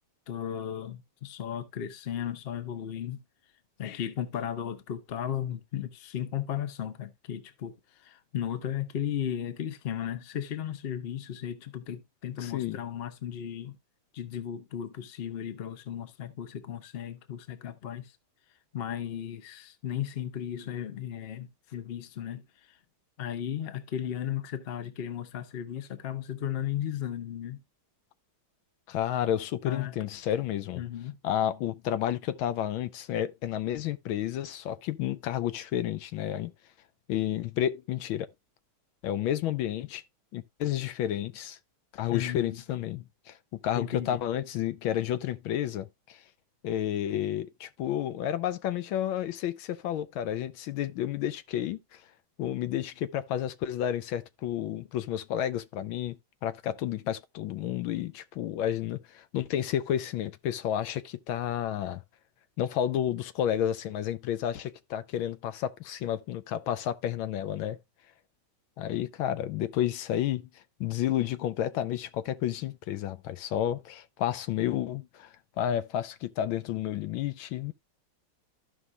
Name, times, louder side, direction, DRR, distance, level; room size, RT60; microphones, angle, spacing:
voice 1, 0.3-3.2 3.8-13.8 14.1-18.1 18.7-22.4 22.7-22.8 23.2-27.6 29.6-29.9 30.7-31.2 42.1-42.6 43.7-44.2, left 10 dB, 45° left, 0.8 m, -35 dB
voice 2, 12.4-12.8 28.9-30.8 31.2-36.5 37.1-38.3 39.0-40.0 40.3-41.6 41.9-43.4 43.6-46.2 46.6-52.0 52.4-62.0 62.6-67.8 68.8-77.7, left 11 dB, 75° left, 1.4 m, -31 dB
14.5 x 5.5 x 2.2 m
omnidirectional pair, 2.3 m